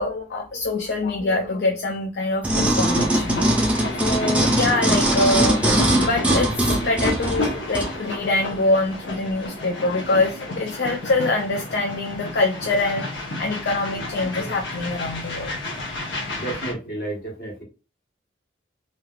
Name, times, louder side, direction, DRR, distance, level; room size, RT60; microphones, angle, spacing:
voice 1, 0.0-3.7 4.0-15.6, left 2 dB, 70° left, 1 dB, 0.5 m, -24 dB
sound 1, 2.4-7.9 8.5-8.6, right 1 dB, 5° right, 0.5 m, -21 dB
sound 2, 2.8-16.7, left 2 dB, 85° left, 1.0 m, -31 dB
voice 2, 16.3-17.6, right 2 dB, 50° left, -1 dB, 1.3 m, -32 dB
3.2 x 2.8 x 2.3 m, 0.32 s
head